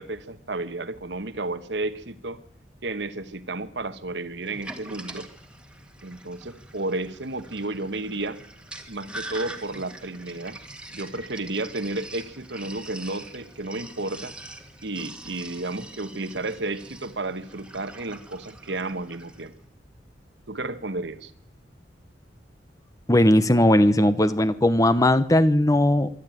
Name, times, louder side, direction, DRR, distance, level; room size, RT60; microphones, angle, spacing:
voice 1, 0.0-2.4 2.8-5.3 6.0-8.4 8.9-10.6 10.9-14.3 14.8-19.5 20.5-21.3, right 2 dB, 70° right, 11 dB, 1.3 m, -32 dB
Sink (filling or washing), 4.4-19.5, right 2 dB, 5° right, 1.7 m, -43 dB
voice 2, 23.1-26.1, left 1 dB, 20° left, 14 dB, 0.8 m, -18 dB
25.0 x 12.0 x 9.2 m, 0.74 s
head